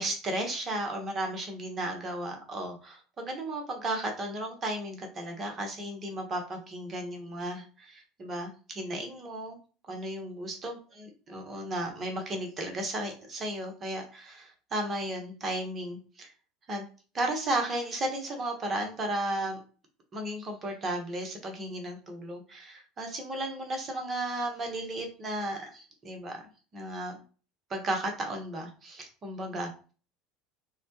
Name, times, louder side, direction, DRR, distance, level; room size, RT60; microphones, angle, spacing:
voice 1, 0.0-9.6 9.8-16.3 16.7-16.9 17.1-19.6 20.1-27.2 27.7-29.9, right 1 dB, 30° right, 3 dB, 0.9 m, -34 dB
3.4 x 2.2 x 2.8 m, 0.37 s
figure-of-eight pair, 70°, 0 cm